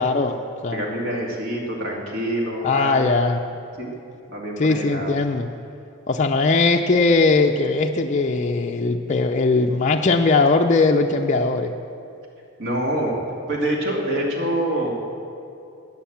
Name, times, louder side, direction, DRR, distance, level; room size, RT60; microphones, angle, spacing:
voice 1, 0.0-0.8 2.6-3.4 4.6-5.5 6.1-11.7, left 3 dB, 35° left, 2 dB, 0.5 m, -19 dB
voice 2, 0.7-3.1 3.8-3.9 4.3-5.1 12.6-13.2 13.5-14.9, right 1 dB, 60° right, -1 dB, 2.3 m, -26 dB
12.5 x 9.5 x 7.3 m, 2.6 s
head